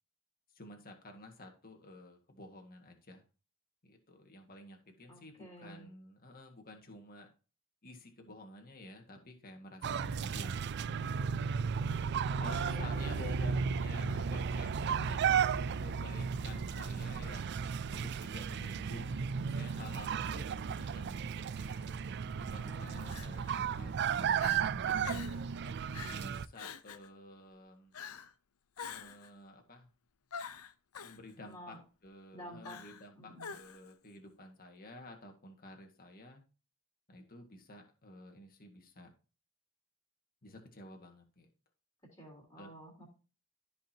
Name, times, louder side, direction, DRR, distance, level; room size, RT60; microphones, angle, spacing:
voice 1, 0.5-3.2 3.8-7.3 7.8-11.2 12.4-17.4 17.9-21.5 22.5-25.5 26.1-28.0 28.9-29.9 31.0-36.4 37.1-39.1 40.4-41.5 42.5-42.7, left 1 dB, 45° left, 3 dB, 1.8 m, -51 dB
voice 2, 5.1-5.9 12.4-13.3 22.7-23.2 31.4-31.8 32.3-32.8 33.2-33.5 42.0-43.1, equal, 20° left, -4 dB, 3.2 m, -50 dB
sound 1, 9.8-26.5, right 6 dB, 50° right, 0.4 m, -34 dB
Crying sobbing, 21.6-21.8 23.1-23.6 24.0-24.1 24.4-24.6 25.0-25.4 25.9-26.2 26.6-27.1 27.9-28.3 28.8-29.3 30.3-31.2 32.6-33.1 33.4-33.9, left 6 dB, 85° left, 0.7 m, -46 dB
13.5 x 5.4 x 2.9 m, 0.34 s
head